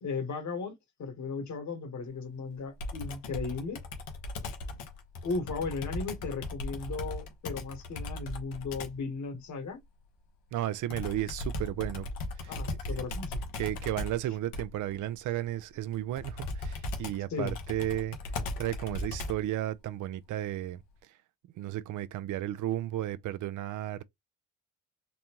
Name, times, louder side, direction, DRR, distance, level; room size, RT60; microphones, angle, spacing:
voice 1, 0.0-3.8 5.2-9.8 12.5-13.4 17.3-17.6, left 4 dB, 55° left, 1.4 m, -36 dB
Computer keyboard, 2.8-9.1 10.9-19.6, left 2 dB, 80° left, 1.0 m, -38 dB
voice 2, 10.5-12.1 12.4-12.8 13.5-18.2 18.6-20.8 21.6-24.0, right 13 dB, 60° right, 0.5 m, -33 dB
4.0 x 2.2 x 3.0 m
supercardioid pair, 65°, 34 cm